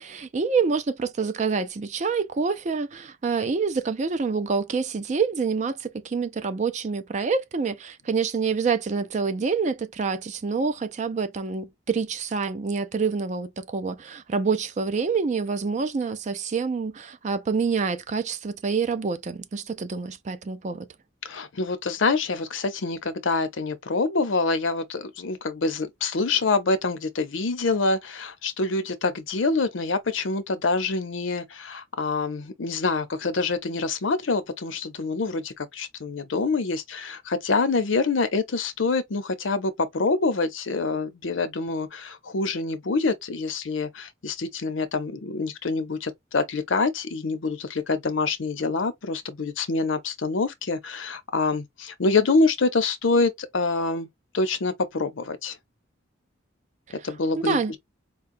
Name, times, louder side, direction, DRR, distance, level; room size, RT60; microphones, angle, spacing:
voice 1, 0.0-20.9 56.9-57.1 57.4-57.7, right 5 dB, 40° right, 0.4 m, -27 dB
voice 2, 21.2-54.1 54.3-55.6 57.0-57.8, left 3 dB, 90° left, 0.7 m, -26 dB
4.4 x 2.2 x 2.5 m
head